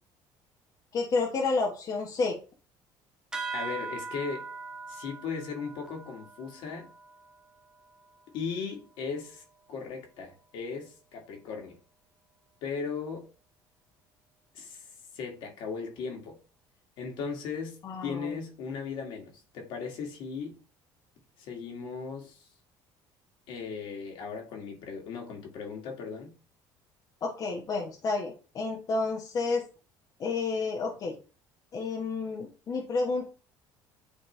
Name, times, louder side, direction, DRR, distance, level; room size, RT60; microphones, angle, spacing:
voice 1, 0.9-2.4 17.8-18.3 27.2-29.7 30.2-31.2 31.7-33.3, left 3 dB, 45° left, 1.1 m, -30 dB
sound 1, 3.3-8.3, right 4 dB, 10° right, 0.7 m, -41 dB
voice 2, 3.5-4.4 4.9-6.9 8.3-9.4 9.7-11.8 12.6-13.2 14.5-14.8 15.1-16.4 17.0-20.6 21.4-22.4 23.5-26.3, left 5 dB, 70° left, 1.9 m, -37 dB
8.9 x 3.2 x 3.3 m
cardioid pair, 105°, 9 cm